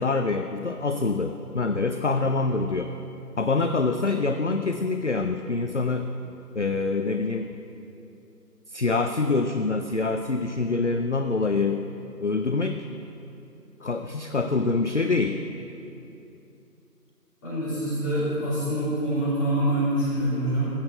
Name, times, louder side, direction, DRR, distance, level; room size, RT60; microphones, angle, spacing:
voice 1, 0.0-2.9 3.4-6.1 6.5-7.5 8.7-11.9 12.2-12.8 13.8-15.4, left 3 dB, 50° left, 7 dB, 0.5 m, -25 dB
voice 2, 17.4-20.7, right 1 dB, 10° left, -12 dB, 3.1 m, -25 dB
15.0 x 6.4 x 7.6 m, 2.8 s
figure-of-eight pair, 165°, 48 cm